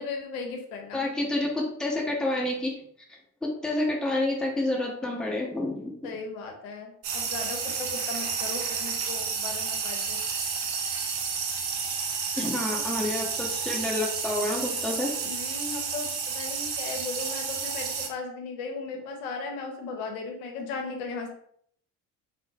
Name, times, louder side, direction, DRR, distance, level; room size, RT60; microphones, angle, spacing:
voice 1, 0.0-1.1 6.0-10.2 15.2-21.3, left 4 dB, 65° left, 3 dB, 0.8 m, -37 dB
voice 2, 0.9-2.8 3.4-5.9 12.3-15.1, left 2 dB, ahead, -2 dB, 0.7 m, -29 dB
sound 1, 7.0-18.1, right 5 dB, 65° right, 0.8 m, -31 dB
3.7 x 2.1 x 2.7 m, 0.65 s
figure-of-eight pair, 60°, 48 cm